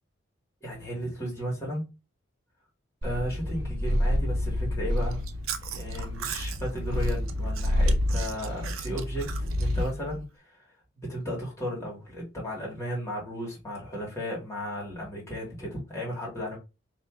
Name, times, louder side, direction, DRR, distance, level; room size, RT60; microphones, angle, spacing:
voice 1, 0.6-1.9 3.0-5.2 5.7-10.7 11.0-16.6, equal, 15° left, 2.1 m, -35 dB
Purr, 3.0-9.9, left 1 dB, 50° right, 1.7 m, -28 dB
Chewing mastication, 5.0-10.3, right 4 dB, 90° right, 0.6 m, -38 dB
3.3 x 3.1 x 4.5 m
head